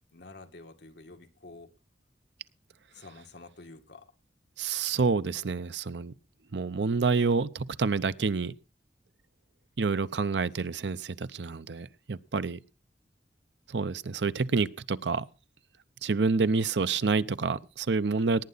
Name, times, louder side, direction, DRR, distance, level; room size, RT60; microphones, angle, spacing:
voice 1, 0.1-1.8 2.9-4.1 5.4-5.5 16.4-16.5, left 2 dB, 80° left, 1.8 m, -49 dB
voice 2, 4.6-6.1 6.5-8.5 9.8-12.6 13.7-15.2 16.0-18.4, right 4 dB, 90° right, 0.7 m, -28 dB
18.5 x 9.5 x 4.0 m
head